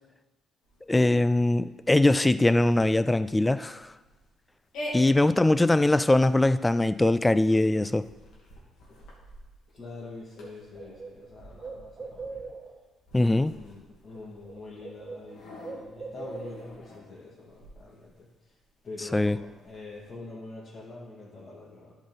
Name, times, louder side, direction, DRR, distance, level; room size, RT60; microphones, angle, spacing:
sound 1, 0.6-20.1, left 1 dB, 80° left, 2.4 m, -48 dB
voice 1, 0.9-3.9 4.9-8.1 13.1-13.5 19.1-19.4, left 2 dB, 15° left, 13 dB, 0.4 m, -22 dB
voice 2, 9.7-12.5 13.5-18.3 18.8-21.9, left 3 dB, 45° left, -7 dB, 2.4 m, -45 dB
Bird, 10.0-10.1 10.4-12.9 13.9-14.2 14.4-16.9, right 4 dB, 40° right, 1.3 m, -42 dB
11.5 x 5.1 x 4.1 m, 1.1 s
cardioid pair, 90°, 0 cm